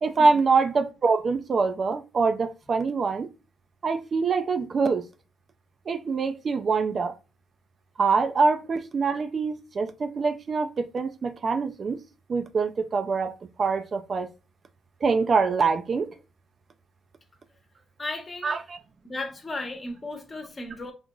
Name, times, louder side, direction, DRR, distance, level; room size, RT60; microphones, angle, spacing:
voice 1, 0.0-3.3 3.8-5.0 5.9-7.2 8.0-12.0 12.3-13.3 13.6-14.3 15.0-16.1 18.4-18.8, right 4 dB, 45° right, 0.3 m, -24 dB
voice 2, 18.0-18.5 19.0-20.9, left 2 dB, 30° left, 1.0 m, -35 dB
3.8 x 2.8 x 2.3 m
cardioid pair, 90°, 0 cm